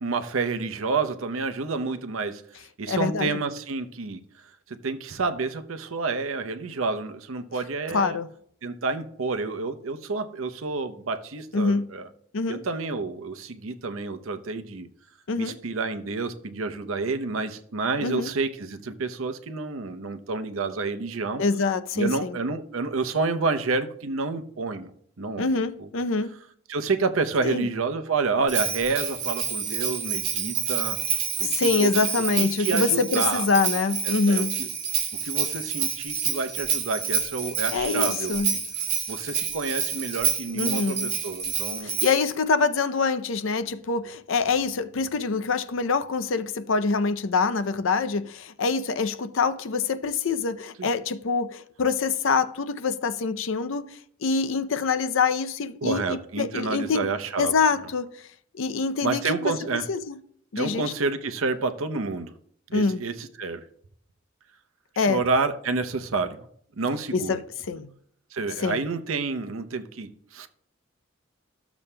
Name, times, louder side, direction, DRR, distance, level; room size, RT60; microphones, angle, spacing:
voice 1, 0.0-2.4 2.8-4.2 4.7-8.2 8.6-12.0 12.5-14.9 15.4-21.4 22.0-24.9 25.2-25.5 25.8-25.9 26.7-31.0 31.4-31.5 31.8-31.9 32.4-33.4 34.0-34.7 35.2-38.6 39.1-41.9 50.8-50.9 55.8-57.5 59.0-59.8 60.6-62.3 62.7-63.6 65.0-66.4 66.8-67.4 68.3-70.5, right 4 dB, 80° right, 0.7 m, -29 dB
voice 2, 2.9-3.3 7.9-8.3 11.5-11.9 12.3-12.6 15.3-15.6 18.0-18.3 21.4-22.4 25.4-26.3 27.4-27.7 31.4-34.6 37.7-38.5 40.6-41.1 41.8-53.9 54.2-57.1 57.4-58.1 58.5-60.2 60.5-60.9 62.7-63.0 65.0-65.2 67.1-67.4 67.7-67.9 68.6-68.8, left 4 dB, 70° left, 0.5 m, -25 dB
Bell, 28.5-42.3, right 7 dB, 55° right, 1.9 m, -28 dB
14.0 x 7.0 x 2.2 m
head